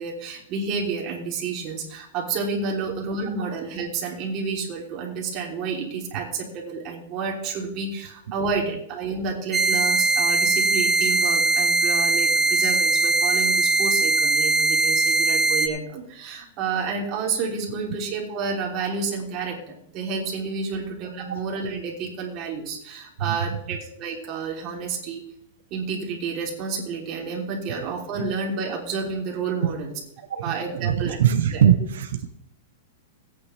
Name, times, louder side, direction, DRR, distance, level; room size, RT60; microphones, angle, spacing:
voice 1, 0.0-25.2 25.7-29.9 30.4-31.2 31.5-31.6, right 5 dB, 30° right, -1 dB, 3.1 m, -30 dB
sound 1, 9.5-15.7, right 3 dB, 10° right, 1.0 m, -20 dB
voice 2, 30.3-32.2, right 9 dB, 75° right, 7 dB, 0.8 m, -22 dB
16.0 x 9.1 x 3.3 m, 0.73 s
supercardioid pair, 160°, 0 cm